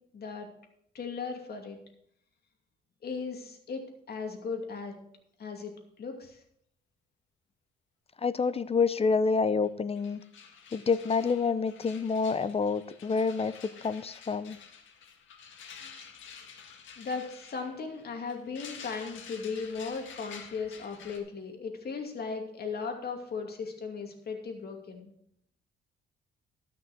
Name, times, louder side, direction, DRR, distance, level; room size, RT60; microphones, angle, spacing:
voice 1, 0.1-0.5 0.9-1.8 3.0-3.8 4.1-5.0 5.4-5.7 6.0-6.4 17.0-25.1, left 5 dB, 55° left, 3 dB, 2.6 m, -37 dB
voice 2, 8.2-10.2 10.7-13.5 13.8-14.6, left 5 dB, 30° left, 15 dB, 0.6 m, -27 dB
sound 1, 9.6-9.7 9.9-21.2, left 6 dB, 75° left, 1.8 m, -49 dB
13.0 x 6.1 x 6.0 m, 0.71 s
cardioid pair, 90°, 20 cm